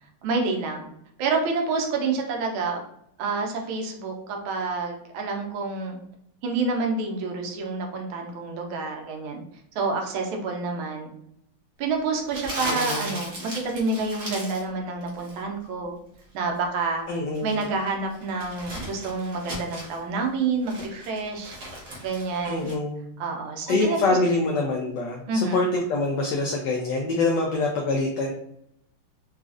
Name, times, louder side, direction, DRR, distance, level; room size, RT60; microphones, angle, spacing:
voice 1, 0.2-0.9 1.2-2.8 3.2-6.0 6.4-9.4 9.7-11.1 11.8-15.9 16.3-17.1 17.4-21.6 22.0-22.7 23.2-24.2 25.3-25.6, right 3 dB, 75° right, 2 dB, 1.5 m, -28 dB
Crumpling crinkling, 12.3-14.7 15.0-15.4 17.1-20.0 20.4-22.8, right 1 dB, 50° right, 1.1 m, -37 dB
voice 2, 12.6-13.1 17.1-17.6 22.4-23.0 23.7-28.3, left 2 dB, 75° left, 1 dB, 1.0 m, -25 dB
4.0 x 2.4 x 2.4 m, 0.74 s
omnidirectional pair, 2.3 m